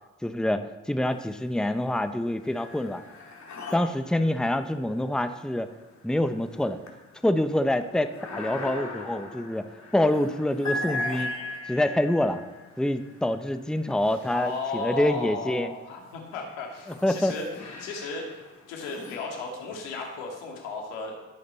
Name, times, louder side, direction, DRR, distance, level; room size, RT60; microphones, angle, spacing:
voice 1, 0.2-3.0 3.7-5.7 6.0-6.8 7.2-9.7 9.9-11.3 11.7-12.4 12.8-15.7 17.0-17.3, left 1 dB, ahead, 9 dB, 1.0 m, -26 dB
sound 1, 1.0-1.7 2.1-15.2 15.9-20.3, left 2 dB, 50° left, 3.0 m, -40 dB
voice 2, 14.3-17.5 17.8-18.3 18.7-21.1, left 4 dB, 80° left, 0 dB, 2.4 m, -35 dB
20.5 x 8.5 x 4.2 m, 1.1 s
hypercardioid pair, 40°, 35 cm